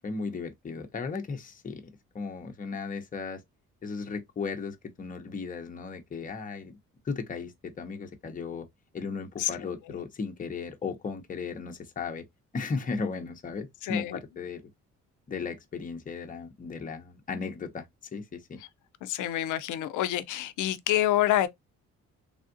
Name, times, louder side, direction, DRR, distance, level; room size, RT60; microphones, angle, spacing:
voice 1, 0.0-1.8 2.1-3.4 3.8-6.8 7.0-8.7 8.9-12.2 12.5-14.6 15.3-17.9 18.1-18.6, left 4 dB, 25° left, 0.7 m, -36 dB
voice 2, 13.8-14.2 19.0-21.5, left 13 dB, 80° left, 0.5 m, -27 dB
3.4 x 2.4 x 2.5 m
cardioid pair, 90°, 30 cm